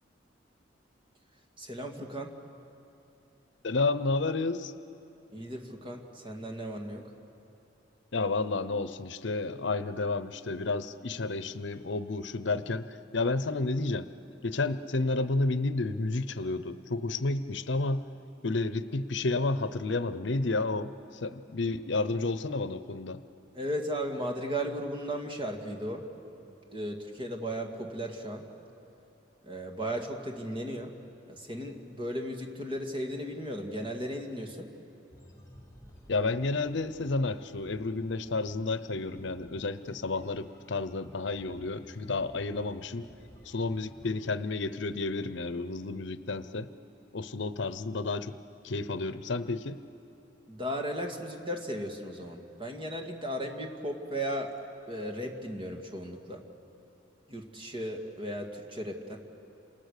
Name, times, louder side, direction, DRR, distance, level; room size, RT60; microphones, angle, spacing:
voice 1, 1.6-2.3 5.3-7.1 23.5-26.1 26.4-28.5 29.4-30.9 31.3-34.7 50.5-54.5 54.9-56.4 57.3-59.2, equal, 25° right, 3 dB, 2.3 m, -36 dB
voice 2, 3.6-4.7 8.1-14.1 14.4-18.0 18.4-20.9 21.2-23.2 36.1-43.1 43.4-46.7 47.1-48.4 48.6-49.8, left 3 dB, 70° left, 13 dB, 0.8 m, -31 dB
sound 1, 35.1-44.1, equal, 15° left, 5.8 m, -54 dB
29.0 x 27.5 x 6.7 m, 2.7 s
head